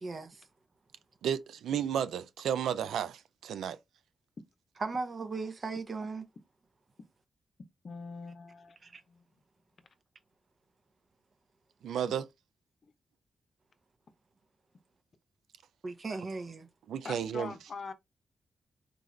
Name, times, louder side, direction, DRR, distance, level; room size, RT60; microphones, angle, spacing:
voice 1, 0.0-0.4 4.8-6.2 8.8-9.0 15.8-16.7, right 4 dB, 50° right, 0.8 m, -37 dB
voice 2, 1.2-3.8 11.8-12.3 16.9-17.5, right 8 dB, 90° right, 0.3 m, -32 dB
voice 3, 7.8-9.2 17.0-17.9, left 4 dB, 60° left, 0.7 m, -43 dB
3.9 x 2.3 x 3.1 m
cardioid pair, 50°, 0 cm